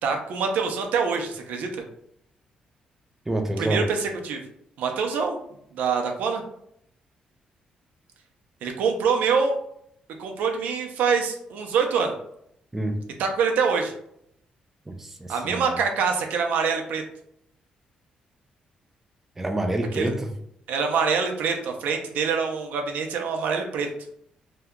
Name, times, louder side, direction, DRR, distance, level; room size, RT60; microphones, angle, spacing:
voice 1, 0.0-1.7 3.6-4.4 4.8-5.4 5.7-6.4 8.6-9.6 10.2-12.1 13.2-13.9 15.3-17.0 19.9-20.1 20.7-23.9, right 5 dB, 90° right, 3 dB, 0.6 m, -25 dB
voice 2, 3.3-3.8 12.7-13.0 14.9-15.8 19.4-20.3, right 1 dB, 10° right, 4 dB, 0.4 m, -27 dB
2.8 x 2.2 x 3.6 m, 0.72 s
cardioid pair, 150°, 3 cm